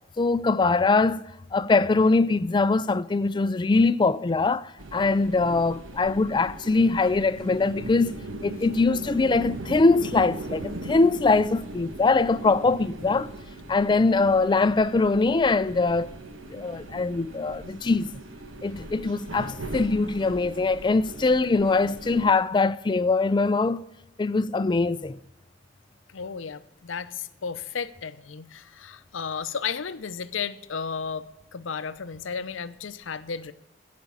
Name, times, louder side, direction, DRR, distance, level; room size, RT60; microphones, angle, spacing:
voice 1, 0.2-1.2 1.5-13.3 13.7-16.1 16.5-18.1 18.6-23.8 24.2-25.2, left 3 dB, 25° left, 0.4 m, -22 dB
sound 1, 4.8-22.3, right 1 dB, 90° right, 1.3 m, -39 dB
voice 2, 26.1-33.5, left 6 dB, 75° left, 0.7 m, -34 dB
15.0 x 5.2 x 8.6 m
head